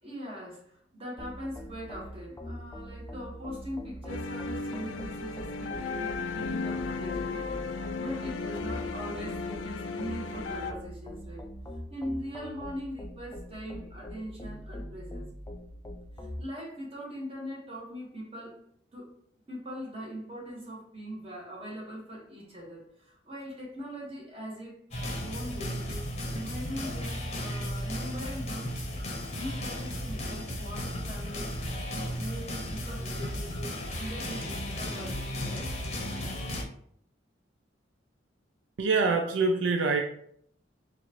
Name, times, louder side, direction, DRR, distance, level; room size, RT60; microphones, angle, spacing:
voice 1, 0.0-11.5 11.9-15.3 16.2-18.6 18.9-19.1 19.5-28.7 29.0-31.5 31.9-33.7 34.0-35.7, equal, 30° right, -4 dB, 1.3 m, -41 dB
sound 1, 1.2-16.4, equal, 15° left, 0.3 m, -42 dB
sound 2, 4.1-10.7, left 4 dB, 85° left, 0.4 m, -35 dB
sound 3, 24.9-36.6, equal, 35° left, 0.8 m, -35 dB
voice 2, 38.8-40.0, right 4 dB, 75° right, 3 dB, 0.4 m, -25 dB
4.1 x 2.5 x 2.9 m, 0.67 s
head